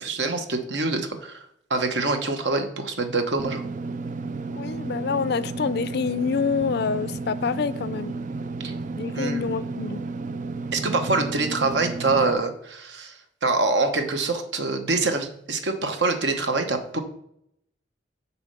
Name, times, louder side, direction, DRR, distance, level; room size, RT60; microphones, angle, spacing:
voice 1, 0.0-3.6 8.6-8.7 9.1-9.6 10.7-17.0, right 3 dB, 70° right, 1.0 m, -25 dB
Engine / Mechanisms, 3.4-12.3, right 3 dB, 45° right, 0.4 m, -32 dB
voice 2, 4.5-8.2 9.0-10.0, left 5 dB, 60° left, 0.4 m, -27 dB
6.9 x 4.4 x 6.7 m
head